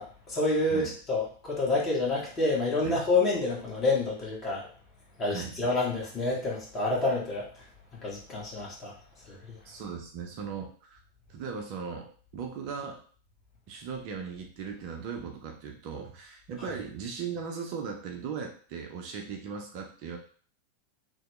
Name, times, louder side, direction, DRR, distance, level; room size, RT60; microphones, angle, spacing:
voice 1, 0.0-4.7 5.2-7.5 8.0-8.9 9.3-9.6, left 2 dB, 25° left, -4 dB, 1.2 m, -28 dB
voice 2, 9.6-11.0 11.3-13.0 13.7-20.2, right 6 dB, 45° right, 2 dB, 0.5 m, -38 dB
2.8 x 2.1 x 3.1 m, 0.43 s
figure-of-eight pair, 90°, 0 cm